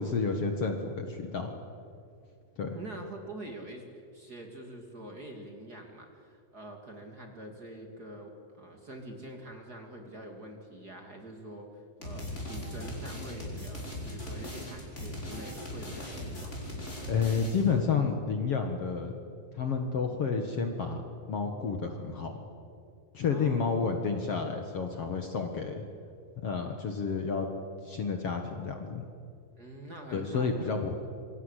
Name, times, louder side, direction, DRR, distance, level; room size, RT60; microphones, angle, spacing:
voice 1, 0.0-1.6 2.6-2.7 17.1-19.1 19.5-21.0 21.3-22.3 23.1-25.8 26.4-27.5 27.8-29.1 30.1-30.9, left 5 dB, 50° left, 4 dB, 2.2 m, -30 dB
voice 2, 2.7-3.8 4.1-16.7 23.3-23.8 29.6-30.7, right 1 dB, 30° right, 3 dB, 2.7 m, -45 dB
sound 1, 12.0-17.8, left 1 dB, 20° left, 5.6 m, -39 dB
27.0 x 25.0 x 8.2 m, 2.4 s
omnidirectional pair, 4.0 m